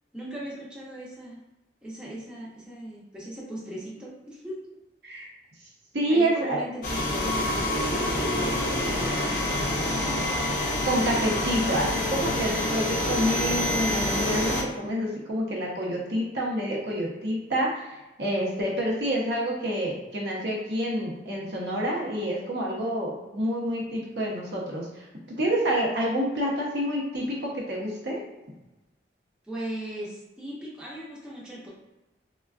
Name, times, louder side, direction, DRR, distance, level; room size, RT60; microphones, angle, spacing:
voice 1, 0.1-1.4 1.8-4.8 6.1-10.2 29.5-31.7, right 1 dB, 5° right, -6 dB, 0.6 m, -38 dB
voice 2, 5.9-6.6 10.8-28.2, equal, 70° right, -3 dB, 0.7 m, -28 dB
sound 1, 6.8-14.6, left 1 dB, 50° left, 0.5 m, -27 dB
3.4 x 2.2 x 2.3 m, 1.0 s
head